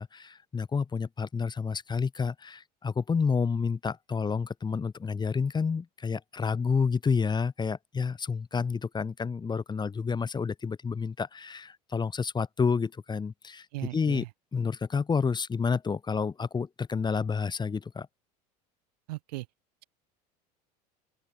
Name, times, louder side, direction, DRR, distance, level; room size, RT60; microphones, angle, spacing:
voice 1, 0.0-13.6 13.9-14.2 14.5-18.1, left 5 dB, 20° left, 1.1 m, -29 dB
voice 2, 13.7-14.3 19.1-19.5, right 20 dB, 75° right, 0.7 m, -37 dB
open air
hypercardioid pair, 80°, 21 cm